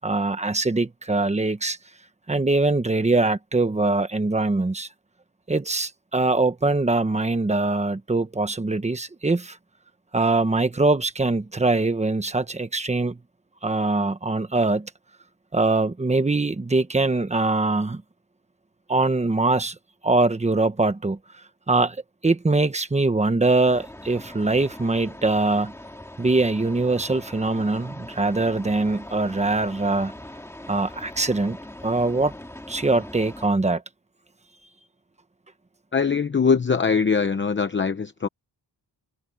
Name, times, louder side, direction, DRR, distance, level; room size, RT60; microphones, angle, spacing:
voice 1, 0.0-1.8 2.3-4.9 5.5-9.6 10.1-13.2 13.6-14.9 15.5-18.0 18.9-19.7 20.0-21.2 21.7-22.0 22.2-25.7 26.2-30.1 30.7-31.6 31.8-32.3 32.7-33.8, right 3 dB, 15° right, 1.1 m, -22 dB
sound 1, 23.6-33.5, left 1 dB, 5° left, 1.9 m, -41 dB
voice 2, 35.9-38.3, left 5 dB, 30° left, 0.8 m, -22 dB
wide cardioid pair, 180°, 41 cm